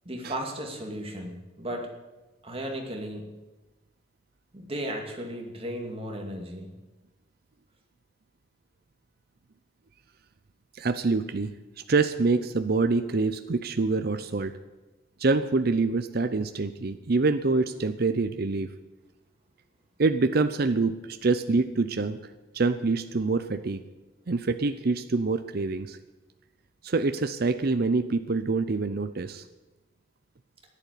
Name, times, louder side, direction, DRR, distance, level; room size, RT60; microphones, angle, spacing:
voice 1, 0.0-1.9 2.4-3.4 4.5-6.7, right 1 dB, 30° right, 2 dB, 2.5 m, -35 dB
voice 2, 10.7-14.5 15.2-18.7 20.0-22.2 22.5-23.8 24.3-26.0 26.8-29.4, right 3 dB, 55° right, 10 dB, 0.6 m, -26 dB
14.0 x 11.0 x 8.3 m, 1.1 s
head